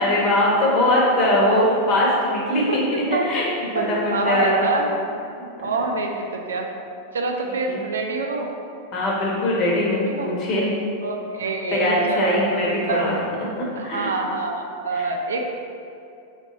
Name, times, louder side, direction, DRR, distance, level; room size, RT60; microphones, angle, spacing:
voice 1, 0.0-2.8 3.1-3.5 3.7-4.7 7.7-7.8 8.9-10.7 11.8-14.1 14.9-15.1, left 1 dB, 35° left, -4 dB, 1.1 m, -21 dB
voice 2, 1.2-1.6 2.7-2.8 3.1-3.3 3.7-5.0 5.6-6.7 7.1-8.5 9.9-10.3 11.0-13.1 13.7-15.4, right 3 dB, 65° right, 3 dB, 0.4 m, -26 dB
4.0 x 3.3 x 3.9 m, 2.6 s
figure-of-eight pair, 90°, 0 cm